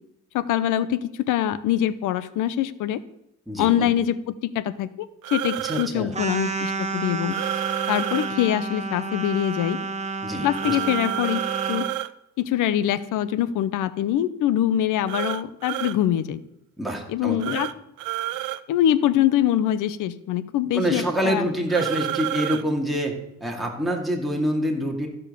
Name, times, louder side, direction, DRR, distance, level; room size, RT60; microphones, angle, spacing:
voice 1, 0.3-3.0 3.6-7.4 7.9-9.8 10.4-11.4 11.7-11.8 12.4-16.4 17.1-17.7 18.7-21.5, left 11 dB, 85° left, 16 dB, 0.7 m, -24 dB
voice 2, 3.5-3.9 5.5-6.2 10.2-10.8 16.8-17.6 20.7-23.1 23.4-25.1, equal, ahead, -1 dB, 2.3 m, -26 dB
sound 1, 5.2-5.9 7.3-8.3 10.5-12.1 15.1-16.0 17.4-17.7 18.0-18.6 21.7-22.6, right 15 dB, 85° right, 0.5 m, -29 dB
sound 2, 6.1-11.9, right 4 dB, 20° right, 1.3 m, -30 dB
14.0 x 5.4 x 6.8 m, 0.82 s
cardioid pair, 90°, 30 cm